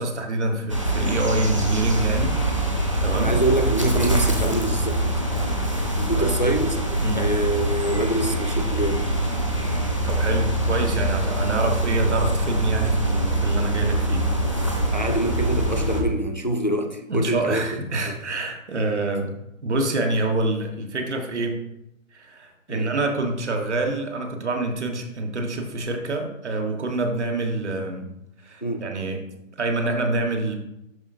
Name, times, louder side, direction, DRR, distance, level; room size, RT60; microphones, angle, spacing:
voice 1, 0.0-2.4 3.0-3.3 6.2-6.5 7.0-7.2 10.0-15.0 17.1-19.3 19.6-21.6 22.1-28.1 28.4-29.2 29.5-30.5, right 2 dB, 55° right, 3 dB, 1.4 m, -26 dB
sound 1, 0.7-16.0, right 1 dB, 25° right, 0.6 m, -24 dB
voice 2, 3.1-5.0 6.0-6.8 7.2-9.1 14.9-17.6 18.0-18.1 22.7-22.9 28.6-28.9, right 1 dB, 35° left, 6 dB, 0.4 m, -25 dB
11.5 x 4.2 x 2.6 m, 0.84 s
hypercardioid pair, 175°, 40 cm